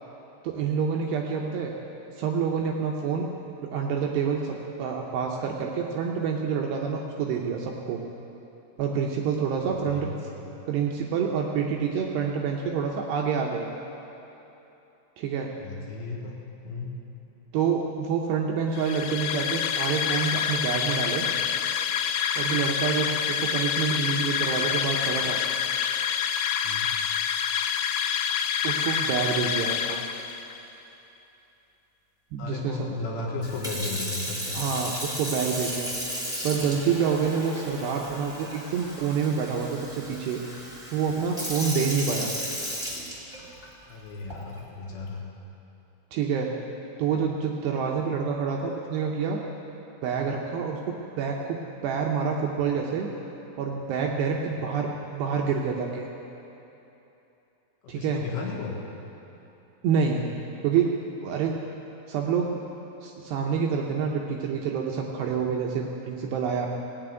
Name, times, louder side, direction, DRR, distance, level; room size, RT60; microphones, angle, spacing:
voice 1, 0.4-1.7 2.2-3.3 3.6-8.0 8.8-10.1 10.7-13.7 15.2-15.5 17.5-21.3 22.4-25.4 28.6-30.0 32.3-32.8 34.5-35.9 36.4-40.4 40.9-42.3 46.1-46.5 47.0-49.4 50.0-53.1 53.6-56.1 57.9-58.2 59.8-60.2 60.6-60.9 61.2-61.6 62.1-62.6 63.0-66.7, right 6 dB, 80° right, 0 dB, 2.6 m, -27 dB
voice 2, 9.6-10.2 15.5-16.4 16.6-17.0 26.6-26.9 29.7-29.8 32.4-35.0 43.8-45.2 54.5-54.6 57.8-58.8, left 3 dB, 70° left, -2 dB, 3.4 m, -35 dB
sound 1, 18.7-30.6, left 8 dB, 90° left, 3.1 m, -27 dB
Sink (filling or washing) / Fill (with liquid), 33.4-43.6 44.3-44.6, equal, 5° right, 0.6 m, -35 dB
17.5 x 6.9 x 9.0 m, 3.0 s
omnidirectional pair, 5.6 m